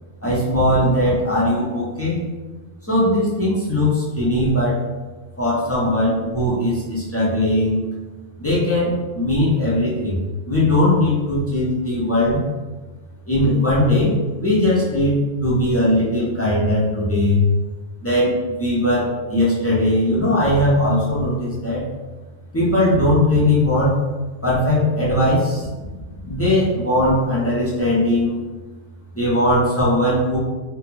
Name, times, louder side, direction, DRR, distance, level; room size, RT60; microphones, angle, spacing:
voice 1, 0.2-2.2 2.9-4.8 5.4-7.8 8.4-10.2 10.5-12.4 13.3-17.4 18.0-21.8 22.5-24.0 24.4-25.7 26.2-28.4 29.1-30.4, left 1 dB, 20° left, -8 dB, 0.4 m, -19 dB
2.4 x 2.1 x 3.0 m, 1.2 s
omnidirectional pair, 1.2 m